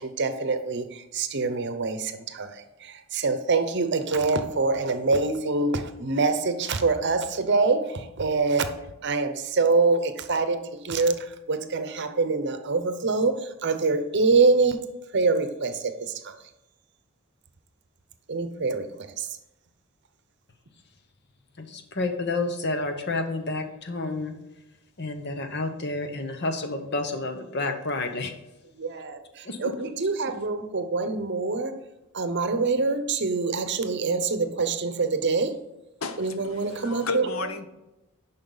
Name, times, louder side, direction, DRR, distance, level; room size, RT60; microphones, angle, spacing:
voice 1, 0.0-8.7 9.0-14.8 15.1-16.3 18.3-19.3 28.8-31.8 32.1-35.6 36.2-37.3, right 3 dB, 55° right, 0.8 m, -25 dB
voice 2, 21.6-24.3 25.0-28.3 29.4-29.7, left 2 dB, 50° left, 1.0 m, -30 dB
voice 3, 36.0-37.7, left 3 dB, 75° left, 0.8 m, -33 dB
10.5 x 5.7 x 4.0 m
head